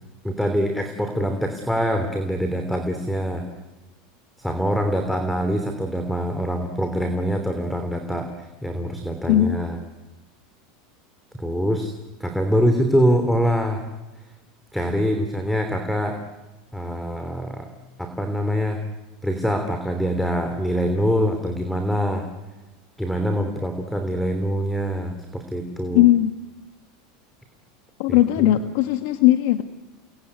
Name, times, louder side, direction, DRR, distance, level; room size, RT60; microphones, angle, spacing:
voice 1, 0.2-3.5 4.4-9.8 11.4-11.9 12.2-13.8 14.7-16.2 16.7-17.7 18.0-18.8 19.2-22.3 23.0-26.0 28.1-28.5, equal, ahead, 7 dB, 3.1 m, -24 dB
voice 2, 25.9-26.3 28.0-29.6, left 14 dB, 70° left, 8 dB, 1.5 m, -18 dB
30.0 x 19.0 x 9.7 m, 1.1 s
supercardioid pair, 120°, 0 cm